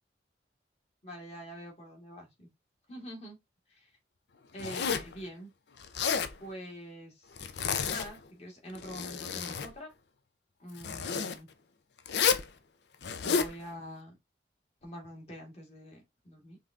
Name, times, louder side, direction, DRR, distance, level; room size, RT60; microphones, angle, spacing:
voice 1, 1.0-2.5 2.9-3.4 4.5-5.5 6.4-7.5 7.8-9.9 10.6-11.5 13.2-14.2 14.8-16.6, equal, 35° left, 2.1 m, -45 dB
Zipper (clothing), 4.6-5.1 5.8-6.3 7.4-8.2 8.7-9.7 10.8-11.4 12.1-12.5 13.0-13.5, left 6 dB, 75° left, 0.6 m, -31 dB
5.4 x 2.7 x 3.6 m
head